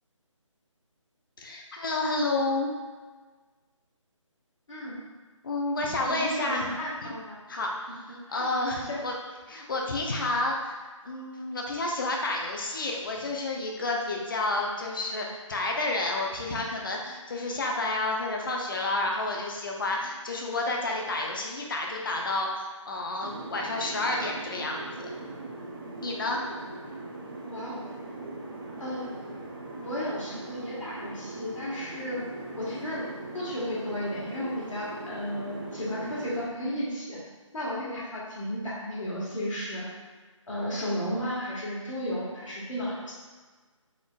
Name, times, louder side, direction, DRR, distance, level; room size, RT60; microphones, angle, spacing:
voice 1, 1.4-2.7 5.4-6.7 7.0-7.1 7.5-9.2 9.5-25.1 26.0-26.4 37.8-38.1, left 2 dB, 40° left, 0 dB, 0.6 m, -30 dB
voice 2, 6.0-7.4 8.3-8.5 8.7-9.0 27.4-27.8 28.8-29.1 29.8-32.3 32.5-37.2 37.5-39.9 40.5-43.1, equal, 75° left, -7 dB, 1.5 m, -34 dB
sound 1, 23.2-36.5, right 2 dB, 45° right, 0.8 m, -40 dB
4.2 x 3.7 x 2.3 m, 1.4 s
figure-of-eight pair, 165°, 17 cm